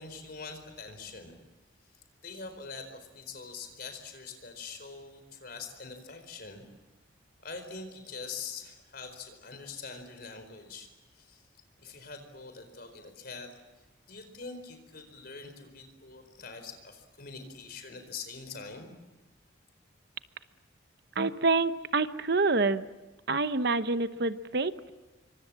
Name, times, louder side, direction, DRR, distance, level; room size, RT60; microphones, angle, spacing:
voice 1, 0.0-1.3 2.2-6.6 7.4-10.9 11.1-11.4 11.8-13.5 14.1-18.9, left 4 dB, 50° left, 8 dB, 4.5 m, -44 dB
voice 2, 21.2-22.9 23.3-24.9, right 3 dB, 55° right, 12 dB, 0.9 m, -27 dB
27.0 x 24.5 x 7.6 m, 1.1 s
head